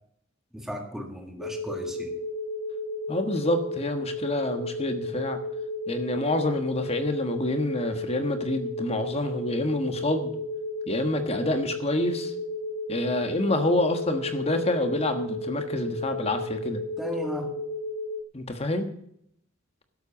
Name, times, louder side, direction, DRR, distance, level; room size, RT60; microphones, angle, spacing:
voice 1, 0.5-2.1 17.0-17.5, left 1 dB, ahead, 3 dB, 1.8 m, -35 dB
sound 1, 1.4-18.2, left 1 dB, 65° left, 1.5 m, -33 dB
voice 2, 3.1-5.4 5.9-10.3 10.9-12.3 12.9-16.8 18.3-18.9, left 1 dB, 30° left, 7 dB, 1.4 m, -27 dB
12.0 x 8.0 x 7.2 m, 0.71 s
head